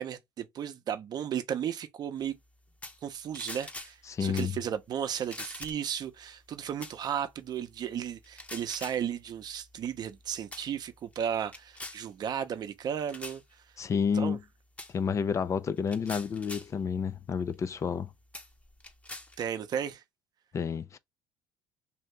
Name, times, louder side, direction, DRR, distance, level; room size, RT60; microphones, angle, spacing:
voice 1, 0.0-2.4 3.0-13.4 14.1-14.4 19.4-20.0, right 9 dB, 50° right, 0.6 m, -34 dB
sound 1, 2.8-3.1 3.4-4.0 4.4-4.6 5.2-5.9 6.8-7.0 8.2-9.0 9.9-10.1 10.5-10.7 11.1-12.0 13.1-13.4 14.8-14.9 15.8-16.7 17.5-17.6 18.3-19.5, left 2 dB, 15° left, 0.8 m, -43 dB
voice 2, 4.1-4.5 13.8-14.4 14.9-18.1 20.5-21.0, left 6 dB, 35° left, 0.4 m, -30 dB
2.7 x 2.7 x 3.3 m
supercardioid pair, 85°, 9 cm